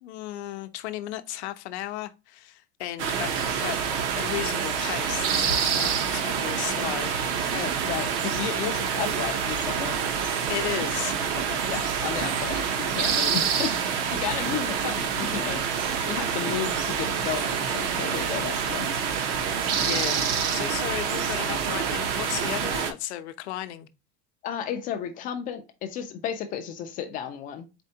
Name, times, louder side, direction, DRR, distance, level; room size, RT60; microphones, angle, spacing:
voice 1, 0.0-3.3 3.6-3.8 4.2-7.1 8.6-8.8 10.2-11.2 19.8-23.9, left 14 dB, 75° left, 0.7 m, -35 dB
sound 1, 3.0-22.9, right 7 dB, 60° right, 0.8 m, -27 dB
voice 2, 7.5-10.0 11.5-18.9 24.4-27.7, left 9 dB, 25° left, 0.3 m, -33 dB
4.3 x 3.3 x 2.7 m
supercardioid pair, 150°, 33 cm